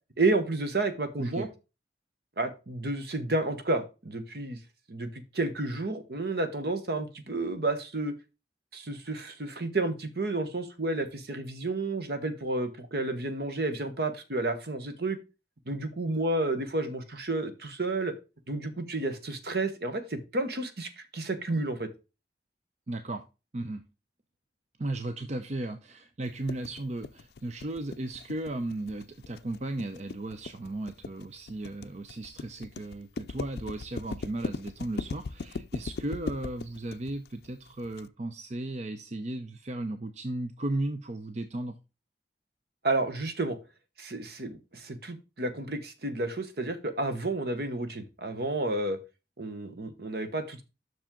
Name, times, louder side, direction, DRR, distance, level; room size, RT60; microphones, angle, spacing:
voice 1, 0.2-1.5 2.4-4.6 4.9-8.1 8.7-15.2 15.7-18.1 18.5-21.9 42.8-43.6 44.0-49.0 49.4-50.6, right 2 dB, 60° right, 9 dB, 1.1 m, -31 dB
voice 2, 22.9-23.2 23.5-23.8 24.8-41.8, right 2 dB, 40° right, 8 dB, 0.6 m, -35 dB
sound 1, 26.5-38.0, left 4 dB, 65° left, 0.4 m, -38 dB
7.4 x 6.2 x 3.7 m, 0.28 s
head